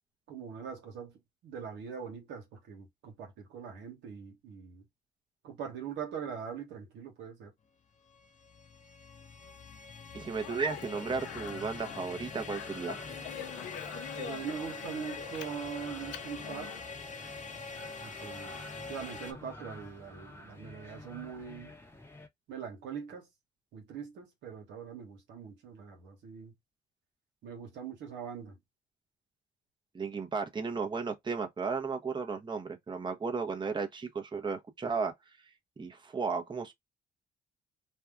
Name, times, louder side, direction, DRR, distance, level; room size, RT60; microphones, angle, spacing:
voice 1, 0.3-4.8 5.4-7.5 14.2-16.7 18.0-21.7 22.5-23.3 23.7-26.5 27.4-28.6, right 7 dB, 85° right, 1.1 m, -42 dB
sound 1, 7.9-19.3, left 4 dB, 40° left, 0.6 m, -44 dB
voice 2, 10.1-13.0 29.9-35.1 35.8-36.7, right 5 dB, 25° right, 0.8 m, -34 dB
Speech, 10.3-16.8, left 9 dB, 90° left, 0.4 m, -45 dB
sound 2, 10.9-22.3, left 1 dB, 15° left, 0.8 m, -50 dB
2.6 x 2.3 x 3.4 m
supercardioid pair, 65°, 18 cm